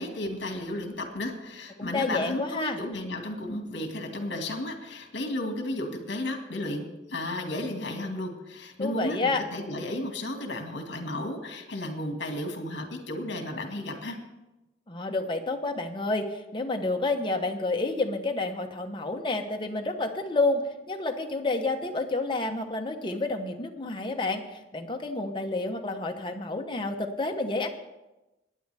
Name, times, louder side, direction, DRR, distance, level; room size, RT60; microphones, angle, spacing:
voice 1, 0.0-14.2, left 1 dB, 65° left, 4 dB, 2.0 m, -33 dB
voice 2, 1.8-2.8 8.8-9.4 14.9-27.7, left 2 dB, 25° left, 3 dB, 1.0 m, -29 dB
19.5 x 9.5 x 3.5 m, 1.0 s
head